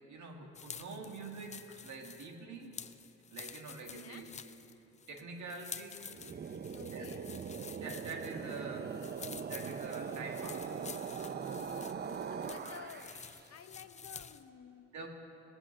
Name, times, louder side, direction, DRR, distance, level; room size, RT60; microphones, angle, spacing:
voice 1, 0.0-2.8 3.3-4.3 5.1-6.0 6.8-8.9 9.5-10.6 11.1-11.3 14.9-15.1, right 4 dB, 70° right, 2 dB, 1.9 m, -46 dB
sound 1, 0.5-14.5, left 6 dB, 25° left, 0.4 m, -50 dB
voice 2, 3.9-4.3 6.7-7.2 12.0-12.1 12.4-13.2 13.5-14.9, left 8 dB, 55° left, 9 dB, 0.8 m, -52 dB
sound 2, 6.0-13.4, right 6 dB, 35° right, 0.5 m, -41 dB
18.5 x 7.9 x 6.3 m, 2.9 s
cardioid pair, 90°, 30 cm